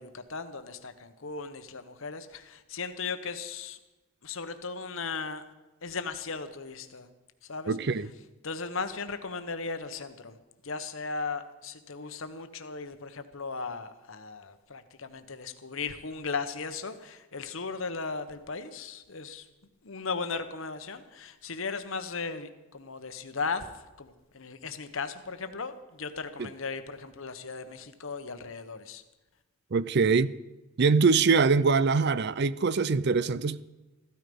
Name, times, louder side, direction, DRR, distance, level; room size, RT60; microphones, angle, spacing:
voice 1, 0.0-3.8 4.2-5.4 5.8-7.1 7.4-7.7 8.4-10.4 10.6-19.4 19.8-23.7 24.0-29.0, left 4 dB, 65° left, 1.1 m, -37 dB
voice 2, 7.7-8.1 26.4-26.5 29.7-30.3 30.8-33.6, right 4 dB, 50° right, 0.4 m, -23 dB
15.0 x 12.5 x 5.4 m
head